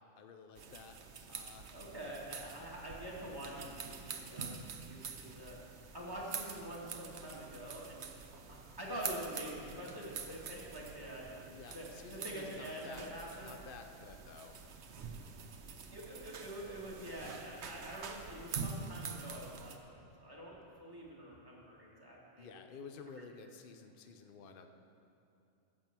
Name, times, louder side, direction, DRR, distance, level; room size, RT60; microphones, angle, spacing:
voice 1, 0.2-1.0 1.3-1.7 11.4-13.0 13.4-14.6 22.4-24.7, left 5 dB, 50° left, 6 dB, 0.8 m, -52 dB
sound 1, 0.6-19.8, right 5 dB, 60° right, 1.0 m, -46 dB
voice 2, 1.7-5.6 5.9-8.1 8.5-11.3 11.7-13.5 15.9-22.5, right 1 dB, 15° right, -5 dB, 2.3 m, -46 dB
15.0 x 7.4 x 6.1 m, 2.7 s
omnidirectional pair, 1.4 m